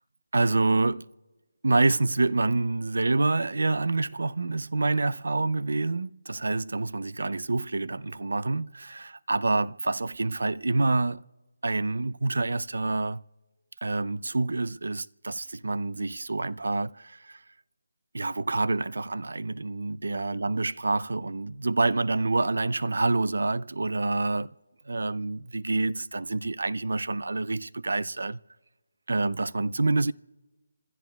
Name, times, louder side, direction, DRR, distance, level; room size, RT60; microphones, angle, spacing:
voice 1, 0.3-1.0 1.6-11.2 11.6-13.2 13.8-17.4 18.1-24.5 24.9-28.4 29.1-30.1, right 3 dB, 75° right, 0.5 m, -27 dB
27.5 x 15.5 x 2.3 m
figure-of-eight pair, 165°, 0 cm